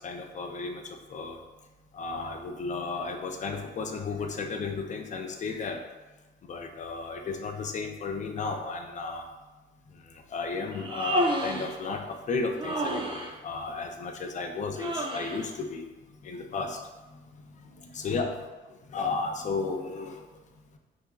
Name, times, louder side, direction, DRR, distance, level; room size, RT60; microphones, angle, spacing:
voice 1, 0.0-1.4 1.9-5.8 6.5-9.3 10.1-15.8 16.2-16.8 17.8-18.4 18.9-20.2, left 4 dB, 40° left, 4 dB, 0.4 m, -33 dB
Human voice, 10.7-11.8 12.6-13.3 14.8-15.5, right 1 dB, 25° right, 0.4 m, -30 dB
2.9 x 2.4 x 2.3 m, 1.2 s
cardioid pair, 90°, 20 cm